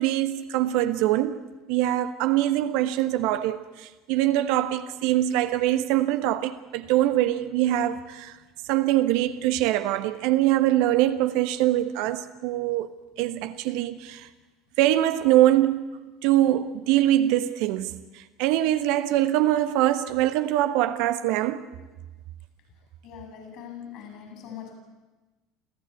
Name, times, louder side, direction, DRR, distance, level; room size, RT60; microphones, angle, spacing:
voice 1, 0.0-1.4 1.7-3.6 4.1-8.3 8.7-12.9 13.2-14.3 14.8-15.9 16.2-18.0 18.4-21.6, right 13 dB, 60° right, 1.2 m, -23 dB
voice 2, 23.0-24.8, left 8 dB, 55° left, 7.8 m, -41 dB
27.5 x 15.0 x 8.5 m
figure-of-eight pair, 65°, 0 cm